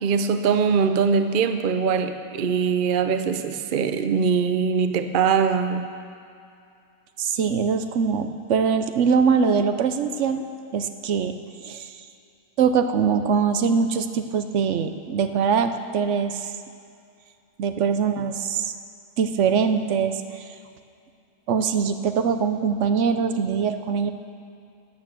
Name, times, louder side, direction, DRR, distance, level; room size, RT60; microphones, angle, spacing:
voice 1, 0.0-5.9, right 6 dB, 80° right, 8 dB, 0.4 m, -22 dB
voice 2, 7.2-10.4 10.7-11.3 11.6-11.9 12.6-16.5 17.6-18.7 19.2-20.4 21.5-24.1, right 6 dB, 60° right, 8 dB, 0.8 m, -22 dB
13.0 x 9.0 x 7.4 m, 2.5 s
omnidirectional pair, 1.8 m